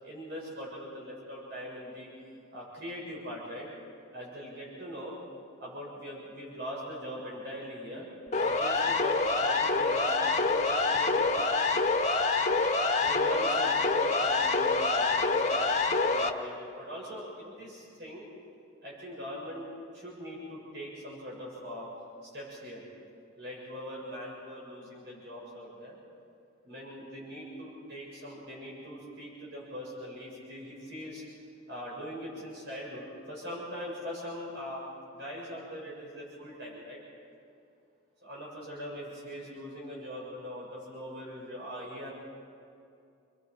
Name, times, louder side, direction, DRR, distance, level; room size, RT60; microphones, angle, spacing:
voice 1, 0.0-2.1 2.5-3.7 4.1-5.2 5.6-8.1 8.4-11.5 13.0-18.3 18.8-19.7 19.9-21.9 22.3-22.8 23.4-26.0 26.6-31.2 31.7-34.8 35.1-37.0 38.2-42.1, equal, 55° right, -5 dB, 7.2 m, -41 dB
Siren, 8.3-16.3, left 3 dB, 35° left, 1.4 m, -26 dB
29.5 x 22.0 x 5.0 m, 2.5 s
head